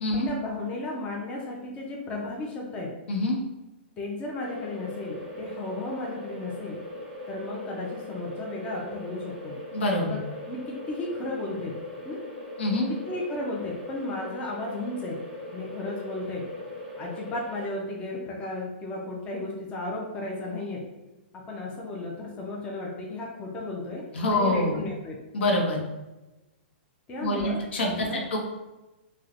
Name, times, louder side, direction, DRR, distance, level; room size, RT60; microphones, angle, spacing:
voice 1, 0.1-2.9 4.0-6.8 7.3-9.5 10.0-10.2 10.5-11.7 12.0-12.2 13.1-15.2 15.5-16.4 17.0-20.8 21.5-24.0 24.3-25.2 27.1-27.6 28.0-28.2, left 2 dB, 20° left, -2 dB, 0.4 m, -34 dB
sound 1, 4.4-17.7, left 1 dB, 5° right, 1.3 m, -40 dB
voice 2, 9.7-10.2 12.6-12.9 24.1-24.8 25.3-25.8 27.2-28.4, left 1 dB, 75° left, 0 dB, 0.7 m, -25 dB
3.1 x 2.1 x 2.4 m, 1.1 s
hypercardioid pair, 145°, 6 cm